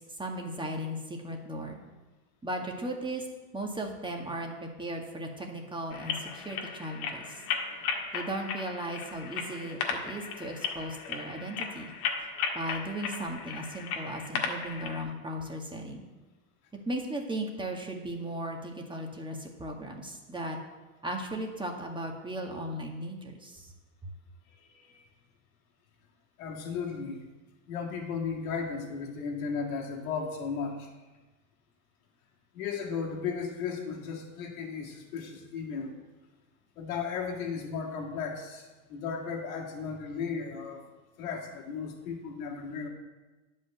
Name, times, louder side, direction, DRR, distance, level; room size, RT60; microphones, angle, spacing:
voice 1, 0.2-1.8 2.4-3.3 3.5-7.4 8.1-11.9 12.5-16.0 16.9-20.6 21.0-23.7, right 1 dB, 10° right, 1 dB, 1.8 m, -36 dB
sound 1, 5.9-15.0, left 6 dB, 65° left, 1.8 m, -36 dB
voice 2, 24.6-25.0 26.4-27.2 27.7-30.9 32.5-36.0 36.8-40.8 41.2-42.9, left 5 dB, 80° left, 1 dB, 2.2 m, -35 dB
9.7 x 5.5 x 7.8 m, 1.2 s
supercardioid pair, 100°, 41 cm